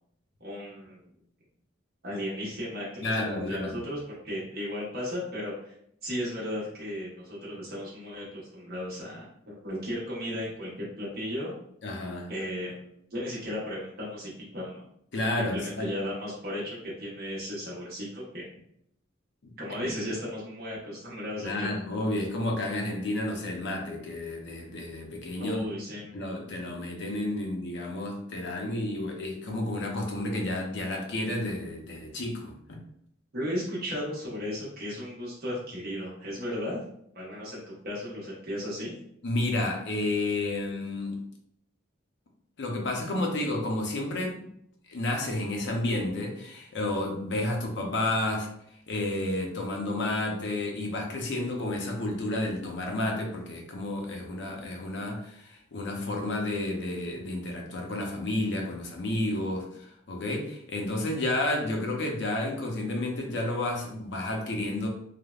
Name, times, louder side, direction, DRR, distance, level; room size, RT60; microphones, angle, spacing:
voice 1, 0.4-1.0 2.0-3.2 3.5-5.7 6.0-11.5 12.3-14.8 15.4-18.4 19.6-21.7 25.4-26.2 33.3-36.8 37.1-39.0, equal, 55° right, -6 dB, 0.9 m, -35 dB
voice 2, 3.0-3.8 11.8-12.3 15.1-15.9 19.4-19.9 21.4-25.8 26.1-32.8 39.2-41.2 42.6-44.5 44.9-48.5 48.9-64.9, left 1 dB, 65° left, 1 dB, 0.6 m, -31 dB
3.3 x 2.1 x 2.3 m, 0.72 s
head